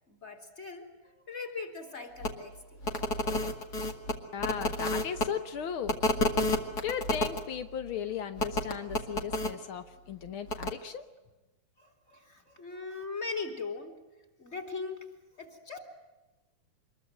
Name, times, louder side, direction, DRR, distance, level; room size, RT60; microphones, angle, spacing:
voice 1, 0.1-2.9 4.2-4.4 11.8-13.9 14.4-15.1 15.4-15.8, left 4 dB, 20° left, 5 dB, 3.8 m, -40 dB
sound 1, 2.2-2.3 2.8-5.3 5.9-7.4 8.4-9.5 10.5-10.7, left 2 dB, 35° left, 2.0 m, -29 dB
voice 2, 4.3-6.0 6.8-11.0, left 8 dB, 75° left, 9 dB, 1.1 m, -36 dB
26.0 x 22.0 x 9.2 m, 1.1 s
omnidirectional pair, 4.0 m